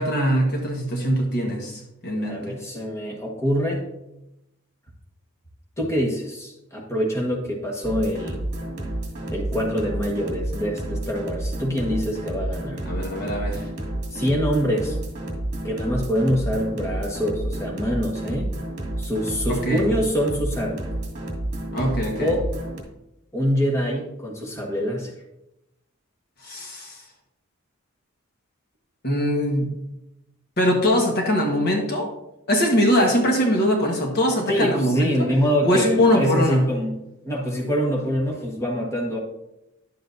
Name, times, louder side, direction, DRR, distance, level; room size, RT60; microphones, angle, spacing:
voice 1, 0.0-2.6 12.8-13.6 19.5-19.8 21.7-22.3 26.4-27.0 29.0-29.7 30.6-32.1 32.5-35.3 35.6-36.7, equal, 50° left, 1 dB, 1.4 m, -22 dB
voice 2, 2.2-3.8 5.8-8.4 9.3-12.8 14.1-15.0 15.6-18.5 19.0-20.8 22.2-22.4 23.3-25.1 34.5-37.0 37.2-39.2, equal, 15° left, -2 dB, 1.4 m, -25 dB
sound 1, 7.8-22.8, right 1 dB, 35° right, 2.0 m, -30 dB
10.5 x 7.5 x 2.6 m, 0.88 s
head